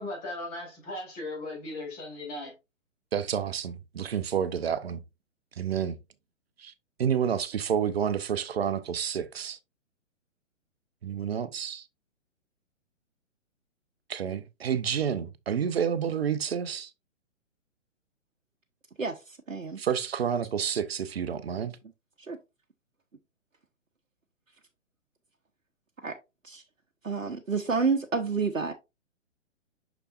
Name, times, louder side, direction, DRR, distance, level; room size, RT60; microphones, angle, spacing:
voice 1, 0.0-2.5, left 2 dB, 25° left, 3.7 m, -37 dB
voice 2, 3.1-5.0 5.6-6.0 6.6-6.7 7.0-9.6 11.0-11.9 14.1-16.9 19.8-21.8, right 8 dB, 50° right, 0.7 m, -29 dB
voice 3, 19.0-19.8 22.3-22.4 26.0-26.2 26.4-26.6 27.0-28.7, right 4 dB, 80° right, 0.9 m, -29 dB
6.6 x 6.0 x 2.5 m
figure-of-eight pair, 125°, 39 cm